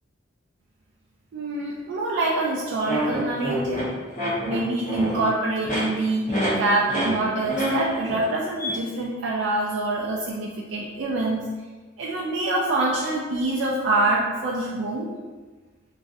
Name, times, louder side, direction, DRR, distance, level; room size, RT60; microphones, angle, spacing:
voice 1, 1.3-3.8 4.5-11.5 12.0-15.1, right 2 dB, 80° right, -4 dB, 0.4 m, -25 dB
sound 1, 2.8-5.3 5.6-5.8 6.3-6.5 6.9-7.1 7.4-8.2 8.6-8.7, right 1 dB, 40° left, 1.0 m, -27 dB
3.0 x 2.5 x 2.6 m, 1.4 s
head